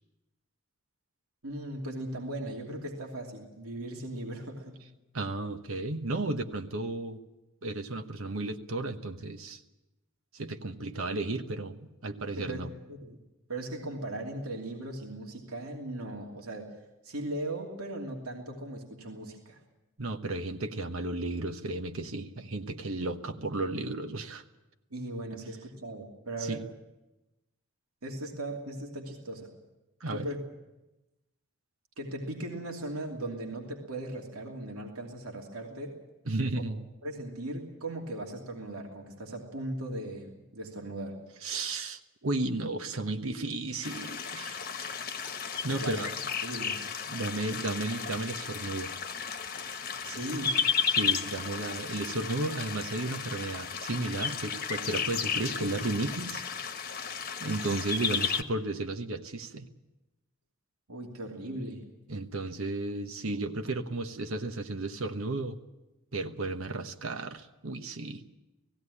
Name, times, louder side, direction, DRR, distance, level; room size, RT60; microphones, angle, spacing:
voice 1, 1.4-4.8 12.4-13.2 13.5-16.7 17.0-19.6 24.9-26.6 28.0-29.5 30.1-30.4 32.0-36.0 36.5-36.6 37.0-41.2 45.8-46.0 46.4-46.8 50.0-50.6 60.9-61.8, right 1 dB, 90° right, 1 dB, 2.8 m, -38 dB
voice 2, 5.1-7.2 7.6-9.6 10.3-12.7 20.0-24.4 26.4-26.6 30.0-30.3 36.3-36.8 41.4-44.6 45.6-46.1 47.1-48.9 50.9-56.8 57.4-59.7 62.1-65.6 66.1-68.2, right 2 dB, 70° right, 6 dB, 1.2 m, -34 dB
sound 1, 43.8-58.4, left 6 dB, 40° left, 1.2 m, -33 dB
18.0 x 16.5 x 9.9 m, 1.0 s
head